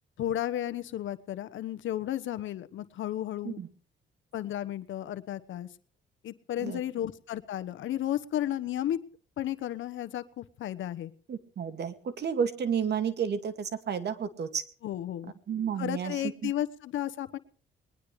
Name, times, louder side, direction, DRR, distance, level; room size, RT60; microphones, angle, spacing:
voice 1, 0.2-3.6 4.3-5.7 6.2-9.0 9.4-11.1 14.8-15.3 15.8-17.4, left 12 dB, 75° left, 13 dB, 1.2 m, -33 dB
voice 2, 11.3-14.6 15.5-16.2 16.4-16.5, right 7 dB, 60° right, 11 dB, 2.2 m, -31 dB
21.0 x 20.5 x 3.3 m, 0.43 s
cardioid pair, 90°, 20 cm